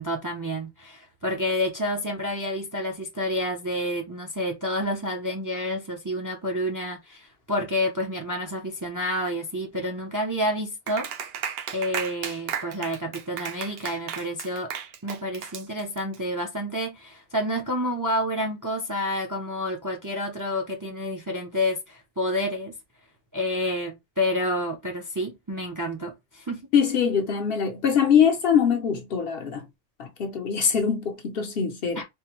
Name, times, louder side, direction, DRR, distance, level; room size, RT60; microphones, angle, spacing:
voice 1, 0.0-11.1 11.7-14.7 15.0-22.7 23.3-26.7 32.0-32.1, left 1 dB, 25° right, 0.5 m, -29 dB
Clapping, 10.9-16.2, right 8 dB, 65° right, 0.7 m, -34 dB
voice 2, 26.7-29.7 30.0-32.0, left 7 dB, 60° left, 0.8 m, -23 dB
3.6 x 2.2 x 2.9 m
omnidirectional pair, 1.2 m